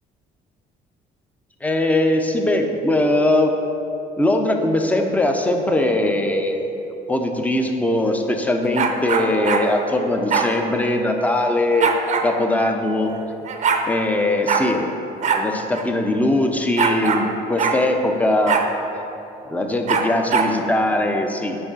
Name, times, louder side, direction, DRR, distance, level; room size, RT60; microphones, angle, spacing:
voice 1, 1.6-3.5 4.2-6.8 7.1-11.9 12.2-13.1 13.9-14.9 15.3-18.6 19.5-21.6, left 1 dB, 10° left, 4 dB, 0.7 m, -20 dB
sound 1, 8.7-9.7 10.3-10.5 11.8-12.3 13.2-13.3 13.4-13.8 14.5-14.7 15.2-15.4 15.7-15.8 16.8-17.3 17.6-17.8 18.5-18.7 19.9-20.5, right 6 dB, 45° right, 0.7 m, -21 dB
8.8 x 5.4 x 4.0 m, 2.9 s
cardioid pair, 110°, 17 cm